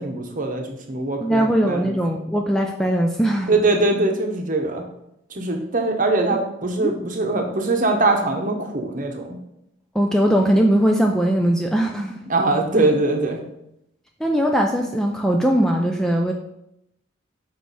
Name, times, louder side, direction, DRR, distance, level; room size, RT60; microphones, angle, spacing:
voice 1, 0.0-1.9 3.5-4.8 5.3-9.4 12.3-13.4, right 2 dB, 40° right, 3 dB, 0.9 m, -22 dB
voice 2, 1.2-3.5 6.8-6.9 9.9-12.2 14.2-16.3, equal, ahead, 2 dB, 0.3 m, -20 dB
6.3 x 4.6 x 4.1 m, 0.81 s
head